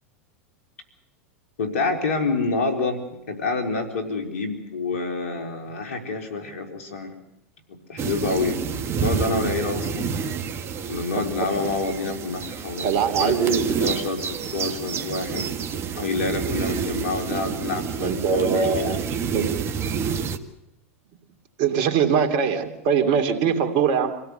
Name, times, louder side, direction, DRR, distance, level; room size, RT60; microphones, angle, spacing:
voice 1, 1.6-3.0 3.3-7.2 7.7-10.1 10.9-12.9 13.2-13.3 13.8-15.5 15.9-19.0, left 3 dB, 75° left, 5 dB, 4.1 m, -27 dB
sound 1, 8.0-20.4, right 6 dB, 35° right, 1.7 m, -29 dB
voice 2, 12.8-13.7 18.0-19.0 19.3-19.5 21.6-24.2, right 6 dB, 50° right, 7 dB, 2.9 m, -22 dB
26.5 x 17.0 x 8.0 m, 0.88 s
hypercardioid pair, 100°, 8 cm